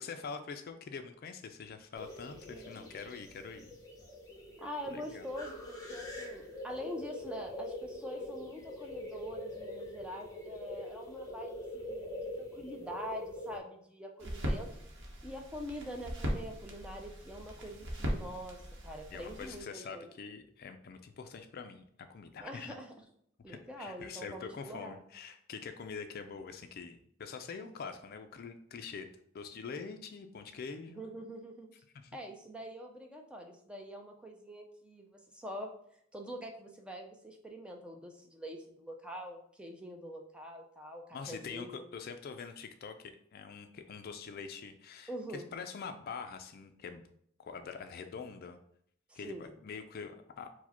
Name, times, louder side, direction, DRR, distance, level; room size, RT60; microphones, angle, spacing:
voice 1, 0.0-3.8 4.9-5.2 19.1-21.8 22.1-22.8 23.5-31.1 31.9-32.2 41.1-47.0 47.4-48.6 49.1-50.5, left 5 dB, 50° left, 7 dB, 0.4 m, -45 dB
sound 1, 1.9-13.6, left 1 dB, 20° left, 1.0 m, -44 dB
voice 2, 2.5-2.9 4.6-14.7 15.2-20.2 22.4-22.9 23.4-25.0 27.6-27.7 30.9-31.7 32.1-35.7 36.1-41.8 45.1-45.5 49.1-49.5, equal, 5° right, 2 dB, 0.5 m, -44 dB
sound 2, 14.2-19.6, equal, 60° right, 0.9 m, -39 dB
4.7 x 2.1 x 4.2 m, 0.68 s
head